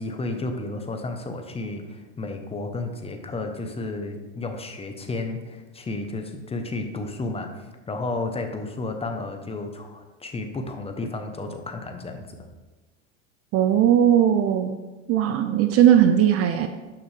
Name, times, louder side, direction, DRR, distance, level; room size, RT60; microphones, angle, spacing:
voice 1, 0.0-7.5 7.9-12.3, left 2 dB, 15° left, 5 dB, 1.0 m, -32 dB
voice 2, 13.5-14.8 15.1-16.7, right 10 dB, 35° right, 8 dB, 0.6 m, -18 dB
11.0 x 5.9 x 3.4 m, 1.2 s
hypercardioid pair, 100°, 39 cm